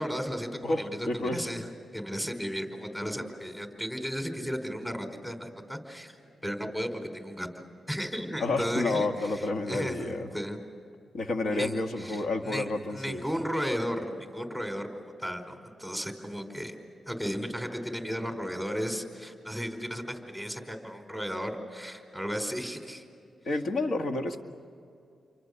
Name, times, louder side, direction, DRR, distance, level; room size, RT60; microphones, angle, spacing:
voice 1, 0.0-1.6 1.9-6.2 6.4-10.6 11.5-16.7 17.1-23.0, equal, 10° left, 5 dB, 4.8 m, -35 dB
voice 2, 0.6-1.4 8.4-10.3 11.1-13.2 23.5-24.4, left 2 dB, 70° left, 5 dB, 1.9 m, -30 dB
29.5 x 24.5 x 6.9 m, 2.4 s
cardioid pair, 55°, 0 cm